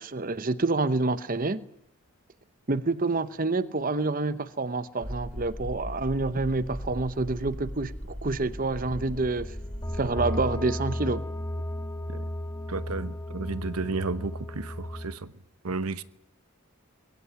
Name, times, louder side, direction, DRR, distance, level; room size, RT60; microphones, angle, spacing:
voice 1, 0.0-1.6 2.7-9.5 10.0-11.3, right 3 dB, 40° right, 0.9 m, -28 dB
sound 1, 5.0-10.6, equal, ahead, 3.0 m, -38 dB
sound 2, 8.8-15.1, left 1 dB, 15° left, 1.8 m, -35 dB
voice 2, 12.7-15.3 15.6-16.0, right 3 dB, 85° right, 1.0 m, -33 dB
22.0 x 18.0 x 10.0 m
head